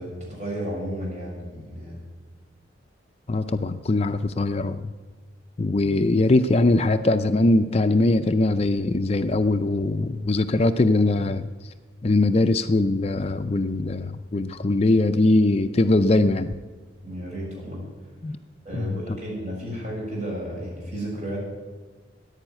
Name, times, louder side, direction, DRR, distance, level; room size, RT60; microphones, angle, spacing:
voice 1, 0.0-2.0 17.0-17.8 18.6-21.4, equal, 35° right, -4 dB, 7.1 m, -33 dB
voice 2, 3.3-4.9 5.6-11.5 12.0-16.5 18.2-18.4 18.7-19.0, left 2 dB, 30° left, 9 dB, 0.4 m, -21 dB
15.0 x 10.5 x 8.9 m, 1.4 s
head